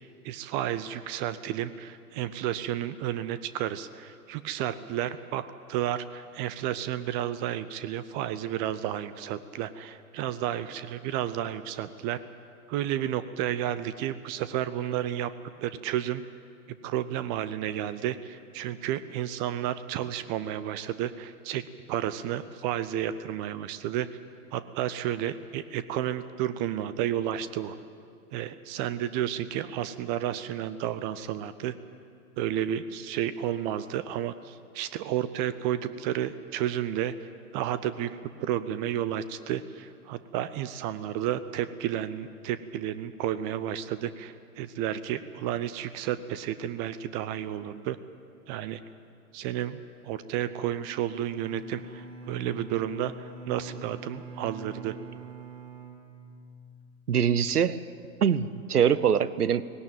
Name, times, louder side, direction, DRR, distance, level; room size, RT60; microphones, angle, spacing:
voice 1, 0.2-12.2 12.7-15.3 15.6-16.2 16.8-21.6 21.9-24.1 24.5-27.8 28.3-31.7 32.4-48.0 48.5-48.8 49.3-55.0, right 11 dB, 30° right, 13 dB, 0.7 m, -32 dB
Bowed string instrument, 50.8-56.8, right 2 dB, 55° right, 3.8 m, -45 dB
voice 2, 57.1-57.8 58.2-59.6, right 8 dB, 85° right, 17 dB, 0.9 m, -23 dB
18.5 x 17.5 x 9.1 m, 2.4 s
figure-of-eight pair, 105°, 44 cm